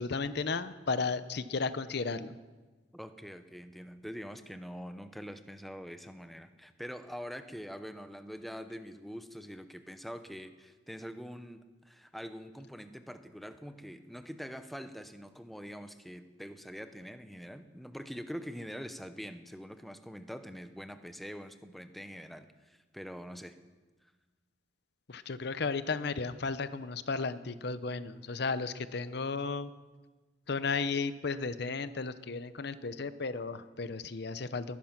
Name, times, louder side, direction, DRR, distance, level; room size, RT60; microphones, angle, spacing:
voice 1, 0.0-2.4 25.1-29.7 30.5-34.8, left 4 dB, 60° left, 13 dB, 0.7 m, -34 dB
voice 2, 2.9-23.6, equal, ahead, 9 dB, 0.8 m, -44 dB
20.0 x 10.5 x 5.9 m, 1.3 s
head